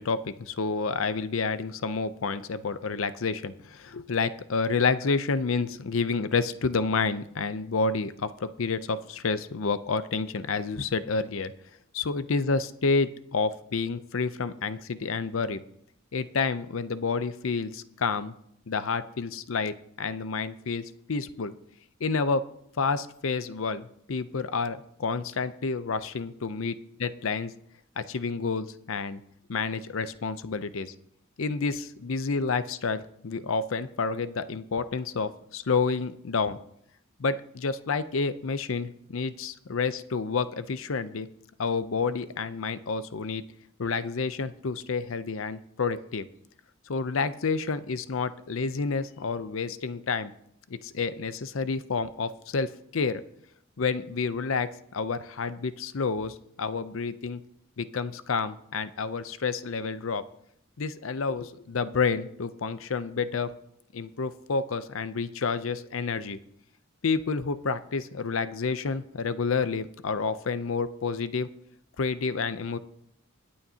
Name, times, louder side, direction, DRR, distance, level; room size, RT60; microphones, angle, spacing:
voice 1, 0.0-11.5 11.9-15.6 16.1-18.3 18.7-21.5 22.0-22.4 22.8-26.7 27.2-27.5 28.0-29.2 29.5-30.9 31.4-36.6 37.2-41.3 41.6-43.4 43.8-46.3 46.9-50.3 50.8-53.2 53.8-57.4 57.8-60.2 60.8-63.5 63.9-66.4 67.0-71.5 72.0-72.8, left 4 dB, 75° left, 13 dB, 0.6 m, -29 dB
25.5 x 8.6 x 2.8 m, 0.73 s
head